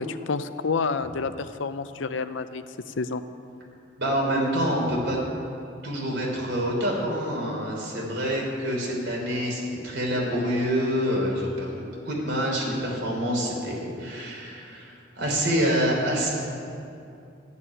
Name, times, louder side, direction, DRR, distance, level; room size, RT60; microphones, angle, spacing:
voice 1, 0.0-3.2, left 4 dB, 75° left, 12 dB, 0.6 m, -29 dB
voice 2, 4.0-5.2 5.8-11.7 12.1-16.3, equal, 60° right, -2 dB, 3.6 m, -26 dB
13.5 x 7.4 x 9.9 m, 2.6 s
head